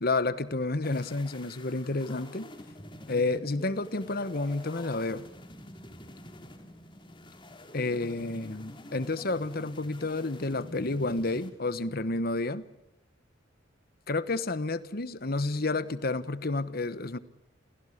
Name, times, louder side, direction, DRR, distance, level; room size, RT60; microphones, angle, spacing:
voice 1, 0.0-2.5 3.1-5.3 7.7-12.6 14.1-17.2, left 2 dB, 50° left, 14 dB, 1.2 m, -30 dB
sound 1, 0.8-11.5, left 1 dB, 25° left, 3.4 m, -47 dB
28.5 x 17.0 x 9.9 m, 0.89 s
head